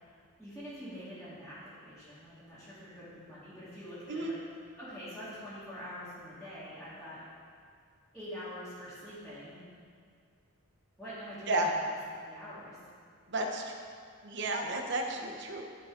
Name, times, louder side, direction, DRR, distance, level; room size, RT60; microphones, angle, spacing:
voice 1, 0.4-7.2 8.1-9.6 11.0-11.9 12.2-12.8, equal, ahead, -16 dB, 2.3 m, -45 dB
voice 2, 13.3-13.7 14.2-15.6, right 2 dB, 50° right, 2 dB, 1.0 m, -32 dB
14.0 x 5.2 x 3.9 m, 2.2 s
head